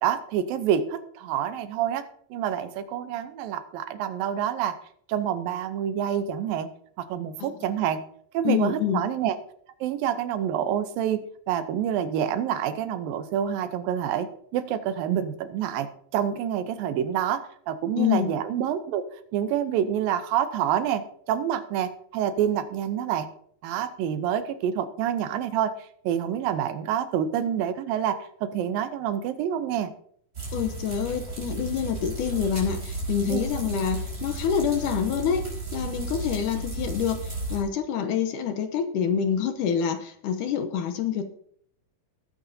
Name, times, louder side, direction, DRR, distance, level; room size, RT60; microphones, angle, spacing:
voice 1, 0.0-4.8 5.1-6.7 7.0-8.0 8.3-9.4 9.8-15.9 16.1-19.0 19.3-23.3 23.6-25.8 26.0-29.9 33.3-33.4, right 9 dB, 80° right, 11 dB, 2.5 m, -27 dB
voice 2, 8.4-9.0 18.0-18.3 30.5-35.5 35.7-41.2, left 8 dB, 70° left, 8 dB, 2.2 m, -27 dB
sound 1, 30.3-37.6, right 2 dB, 25° right, 4.8 m, -33 dB
19.0 x 9.1 x 2.7 m, 0.64 s
omnidirectional pair, 4.1 m